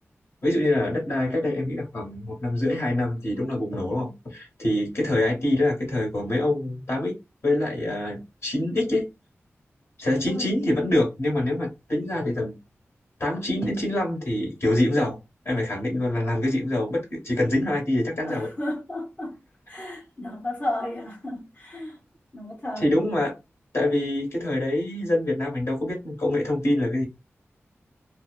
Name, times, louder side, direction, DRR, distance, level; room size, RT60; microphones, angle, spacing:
voice 1, 0.4-7.2 7.4-9.1 10.0-12.6 13.2-15.2 15.4-18.5 22.8-23.4 23.7-27.0, left 1 dB, 60° left, 1.3 m, -25 dB
voice 2, 10.3-10.6 18.2-19.4 19.7-22.0 22.3-23.0, left 1 dB, 35° left, 0.9 m, -33 dB
2.6 x 2.2 x 2.3 m
wide cardioid pair, 70°, 5 cm